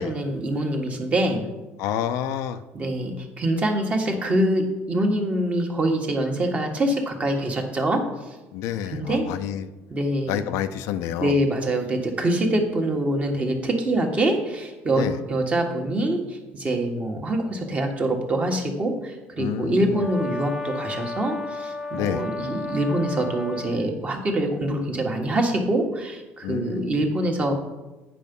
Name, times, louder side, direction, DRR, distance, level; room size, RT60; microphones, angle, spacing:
voice 1, 0.0-1.5 2.7-8.0 8.9-9.3 9.9-10.5 11.2-27.5, right 1 dB, 25° right, 3 dB, 1.5 m, -25 dB
voice 2, 1.8-2.6 8.5-9.7 10.3-11.3 15.0-15.2 19.4-20.1 21.9-22.3 26.4-27.0, left 10 dB, 75° left, 11 dB, 0.5 m, -28 dB
Brass instrument, 19.9-23.8, left 3 dB, 5° right, 0.7 m, -33 dB
8.6 x 5.7 x 5.3 m, 1.1 s
cardioid pair, 125°, 5 cm